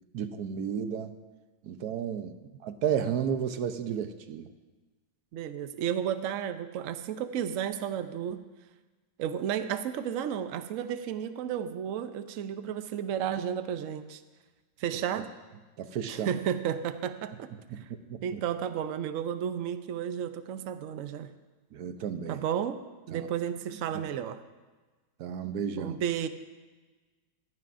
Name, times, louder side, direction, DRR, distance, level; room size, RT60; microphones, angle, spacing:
voice 1, 0.1-1.2 1.6-2.3 2.6-4.4 15.8-16.3 17.7-17.8 18.1-18.4 21.7-22.4 23.1-23.3 25.2-26.0, right 8 dB, 65° right, 9 dB, 1.1 m, -32 dB
voice 2, 5.3-8.4 9.2-14.2 14.8-15.3 16.1-17.5 17.8-17.9 18.2-21.3 22.3-22.8 23.1-24.4 25.8-26.3, right 9 dB, 90° right, 10 dB, 0.7 m, -32 dB
16.5 x 15.0 x 2.6 m, 1.3 s
omnidirectional pair, 2.1 m